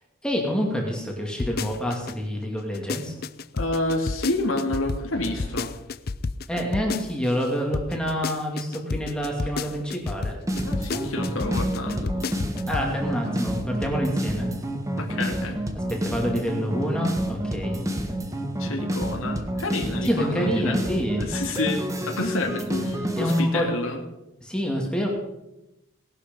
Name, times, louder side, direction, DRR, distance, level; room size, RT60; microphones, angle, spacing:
voice 1, 0.2-3.1 6.5-10.4 12.7-14.5 16.0-17.8 20.0-21.3 23.2-23.6 24.4-25.1, equal, 5° left, -1 dB, 2.5 m, -27 dB
sound 1, 1.4-2.1 2.6-7.5 7.7-12.9 13.2-13.3, left 4 dB, 45° left, 0.5 m, -31 dB
sound 2, 2.3-2.5 2.8-2.9 5.1-5.7, right 1 dB, 50° right, 4.1 m, -42 dB
voice 2, 3.5-5.7 10.6-12.1 15.0-15.6 18.6-20.8 21.2-24.0, left 2 dB, 85° left, 2 dB, 2.3 m, -29 dB
sound 3, 10.5-23.4, right 1 dB, 15° right, 1.5 m, -29 dB
19.0 x 12.0 x 5.4 m, 0.92 s
head